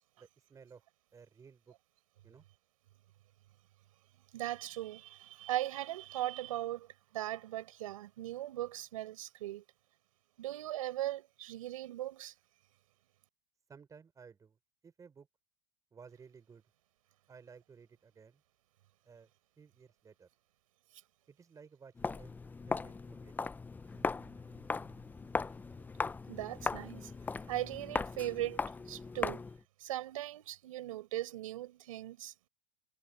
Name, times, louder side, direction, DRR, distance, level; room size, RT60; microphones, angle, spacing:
voice 1, 0.2-0.8 1.1-1.7 2.2-2.4 13.7-14.6 14.8-15.3 15.9-16.6 17.3-18.4 19.0-19.3 19.6-20.3 21.3-22.4 22.7-23.6, right 6 dB, 20° right, 5.1 m, -56 dB
voice 2, 4.3-9.6 10.4-12.3 26.3-27.1 27.5-29.4 29.8-32.3, right 14 dB, 80° right, 5.8 m, -39 dB
Walk footsteps, 22.0-29.6, left 4 dB, 10° left, 0.7 m, -38 dB
supercardioid pair, 120°, 17 cm